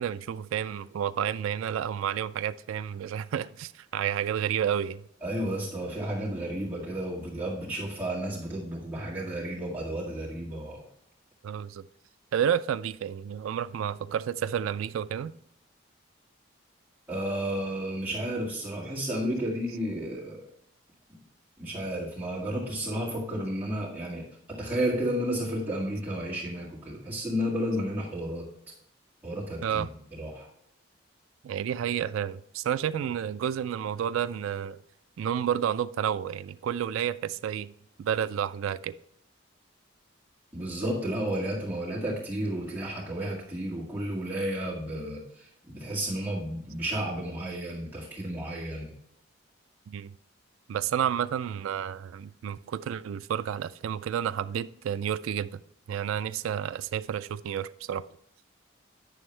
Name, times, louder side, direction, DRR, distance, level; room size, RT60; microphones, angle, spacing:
voice 1, 0.0-5.0 11.4-11.8 12.3-15.3 19.7-19.8 29.6-29.9 31.4-34.8 35.2-37.7 38.0-38.9 49.9-50.1 50.7-55.6 55.9-58.0, right 9 dB, 85° right, 0.3 m, -30 dB
voice 2, 5.2-10.8 17.1-20.4 21.6-28.5 29.2-29.9 30.2-30.5 40.5-48.9, right 1 dB, 10° right, 1.9 m, -32 dB
9.2 x 7.0 x 3.2 m
head